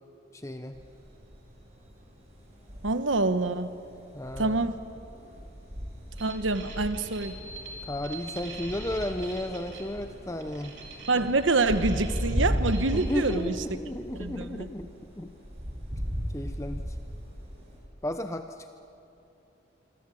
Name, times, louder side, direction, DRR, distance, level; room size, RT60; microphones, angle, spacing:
voice 1, 0.3-0.7 4.1-4.7 7.9-10.7 12.9-14.9 15.2-15.3 16.3-16.8 18.0-18.7, left 1 dB, 15° left, 7 dB, 0.7 m, -33 dB
sound 1, 0.7-17.8, equal, 35° right, 7.4 m, -36 dB
voice 2, 2.8-3.7 4.4-4.8 6.2-7.3 11.1-13.5 14.1-14.7, right 3 dB, 90° right, 11 dB, 1.2 m, -26 dB
sound 2, 6.2-13.4, right 3 dB, 75° right, 4.3 m, -45 dB
26.0 x 25.0 x 8.5 m, 2.9 s
head